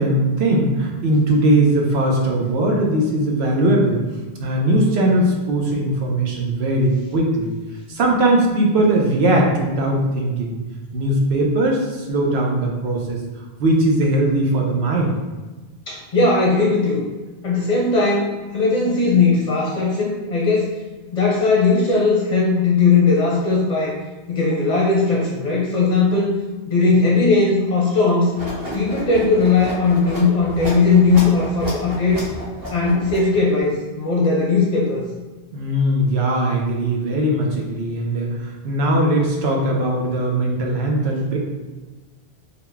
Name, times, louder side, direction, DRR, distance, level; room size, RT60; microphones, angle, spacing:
voice 1, 0.0-4.0 4.4-7.5 7.9-10.6 10.9-13.2 13.6-15.1 35.5-41.4, right 1 dB, 90° right, 0 dB, 1.0 m, -19 dB
voice 2, 15.9-17.0 17.4-20.7 21.1-24.0 24.3-26.3 26.7-28.3 28.7-32.2 32.7-35.1, left 3 dB, 45° left, -3 dB, 0.6 m, -18 dB
sound 1, 28.3-33.6, equal, 35° right, 1.2 m, -32 dB
3.9 x 2.2 x 3.3 m, 1.2 s
omnidirectional pair, 1.1 m